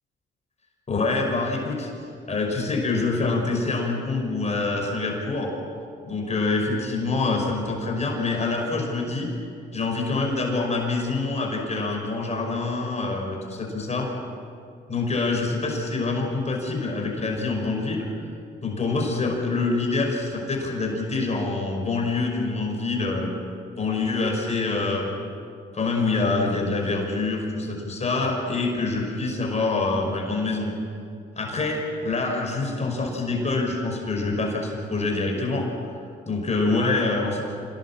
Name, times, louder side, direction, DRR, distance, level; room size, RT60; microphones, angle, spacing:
voice 1, 0.9-1.9 2.3-5.5 6.0-9.3 9.7-14.1 14.9-18.1 18.6-23.3 23.8-25.1 25.7-30.7 31.4-35.7 36.3-37.4, left 3 dB, 35° left, 0 dB, 5.6 m, -26 dB
26.0 x 18.0 x 7.4 m, 2.4 s
cardioid pair, 90°, 20 cm